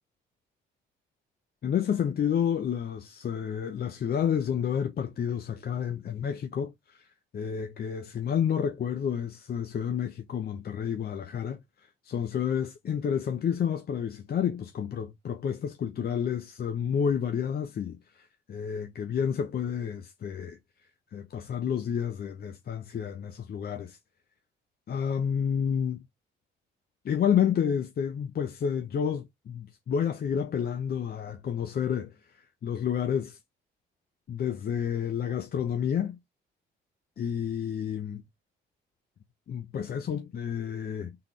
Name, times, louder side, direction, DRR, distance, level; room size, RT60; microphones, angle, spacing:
voice 1, 1.6-7.0 7.3-11.6 12.0-20.6 21.1-24.0 24.9-26.0 27.0-32.1 32.6-33.4 34.3-36.2 37.2-38.2 39.5-41.1, left 8 dB, 50° left, 0.8 m, -30 dB
4.1 x 3.8 x 3.2 m
cardioid pair, 90°, 20 cm